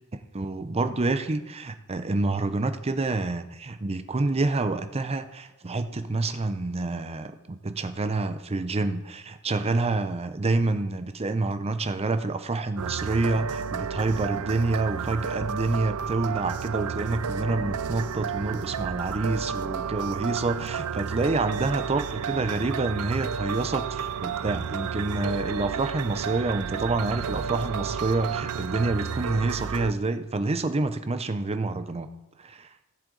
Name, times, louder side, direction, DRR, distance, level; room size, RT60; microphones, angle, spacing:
voice 1, 0.3-32.1 32.4-32.7, right 3 dB, 25° right, 10 dB, 0.6 m, -28 dB
sound 1, 12.8-29.9, right 7 dB, 80° right, 0.5 m, -32 dB
17.0 x 7.7 x 3.9 m, 1.1 s
head